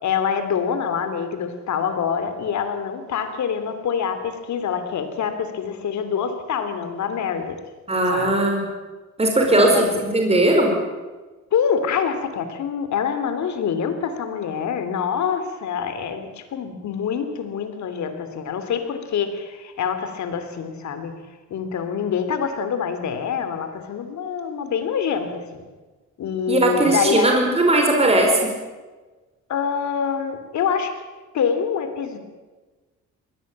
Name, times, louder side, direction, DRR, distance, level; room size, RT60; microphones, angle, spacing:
voice 1, 0.0-7.6 8.1-8.3 9.6-9.9 11.5-21.1 21.5-25.6 26.2-27.4 29.5-30.9 31.3-32.2, left 7 dB, 70° left, 9 dB, 3.1 m, -25 dB
voice 2, 7.9-8.7 9.2-9.8 10.1-10.8 26.5-28.5, right 2 dB, 20° right, 2 dB, 4.9 m, -18 dB
21.5 x 17.5 x 8.8 m, 1.3 s
cardioid pair, 90°, 30 cm